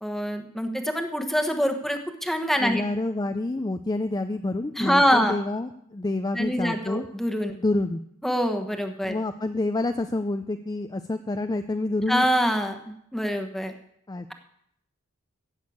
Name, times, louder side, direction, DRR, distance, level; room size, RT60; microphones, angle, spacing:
voice 1, 0.0-2.8 4.8-5.4 6.3-7.5 8.2-9.2 12.1-13.7, equal, ahead, 5 dB, 1.1 m, -25 dB
voice 2, 2.6-7.1 7.6-8.0 9.1-12.3 14.1-14.3, left 2 dB, 20° left, 8 dB, 0.4 m, -28 dB
15.0 x 6.3 x 8.5 m, 0.73 s
head